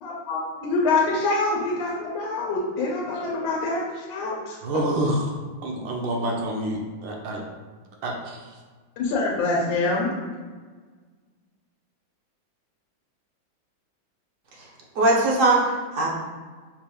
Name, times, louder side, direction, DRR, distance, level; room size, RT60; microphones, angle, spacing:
voice 1, 0.0-4.6 9.0-10.1, left 3 dB, 75° left, -4 dB, 1.5 m, -25 dB
voice 2, 4.6-5.3 5.6-7.4 8.0-8.4, right 1 dB, 75° right, 0 dB, 1.3 m, -27 dB
voice 3, 14.9-16.1, right 2 dB, 50° right, -4 dB, 1.1 m, -20 dB
5.9 x 3.3 x 2.3 m, 1.5 s
omnidirectional pair, 2.2 m